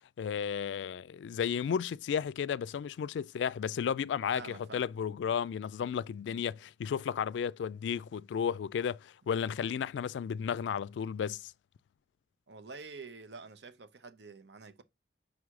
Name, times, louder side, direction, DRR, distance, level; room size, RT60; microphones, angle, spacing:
voice 1, 0.2-11.5, left 7 dB, 90° left, 0.3 m, -33 dB
voice 2, 4.3-4.8 12.5-14.8, right 4 dB, 75° right, 0.8 m, -47 dB
5.6 x 4.7 x 3.6 m
head